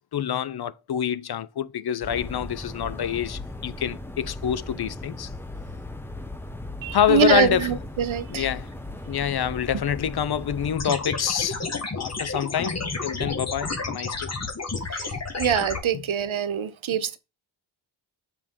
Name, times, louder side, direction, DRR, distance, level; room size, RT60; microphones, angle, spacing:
voice 1, 0.1-5.3 6.9-7.8 8.3-8.7 9.1-11.6 12.0-14.3 15.9-16.0, left 9 dB, 55° left, 0.5 m, -26 dB
sound 1, 2.0-10.8, left 2 dB, 5° left, 0.8 m, -37 dB
voice 2, 6.8-8.5 14.9-15.1 15.4-17.2, right 9 dB, 80° right, 0.8 m, -24 dB
sound 2, 10.8-15.8, left 3 dB, 35° left, 1.2 m, -31 dB
7.3 x 4.7 x 3.6 m
wide cardioid pair, 105°, 47 cm